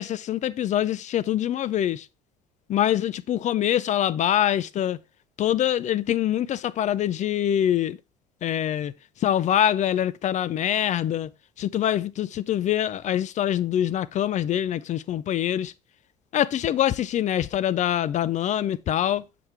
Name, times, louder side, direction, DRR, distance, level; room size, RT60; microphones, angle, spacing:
voice 1, 0.0-2.0 2.7-5.0 5.4-8.0 8.4-8.9 9.2-11.3 11.6-15.7 16.3-19.2, left 11 dB, 35° left, 0.4 m, -24 dB
6.8 x 5.7 x 3.3 m
hypercardioid pair, 60°, 20 cm